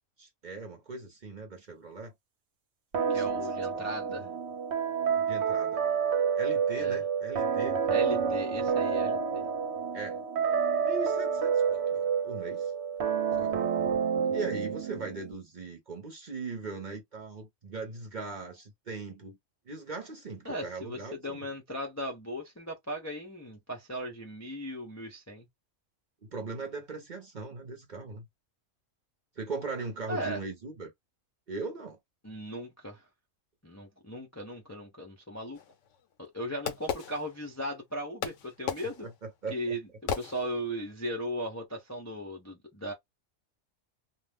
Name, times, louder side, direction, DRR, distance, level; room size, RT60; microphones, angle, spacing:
voice 1, 0.2-2.1 2.9-4.3 5.1-5.8 6.4-7.8 9.9-10.2 10.8-12.7 13.4-13.6 14.3-19.4 19.6-21.5 26.2-28.3 29.4-30.9 31.5-32.0 39.0-39.8, right 3 dB, 40° right, 0.8 m, -39 dB
sound 1, 2.9-15.3, right 6 dB, 60° right, 1.0 m, -29 dB
voice 2, 3.1-4.3 6.8-7.0 7.9-9.4 20.4-25.5 30.1-30.4 32.2-33.0 33.6-35.6 36.2-39.1 39.5-39.8 40.2-42.9, equal, 20° left, 0.5 m, -37 dB
Fireworks, 35.5-37.8 38.2-40.9, left 7 dB, 70° left, 0.9 m, -37 dB
2.5 x 2.2 x 3.4 m
omnidirectional pair, 1.4 m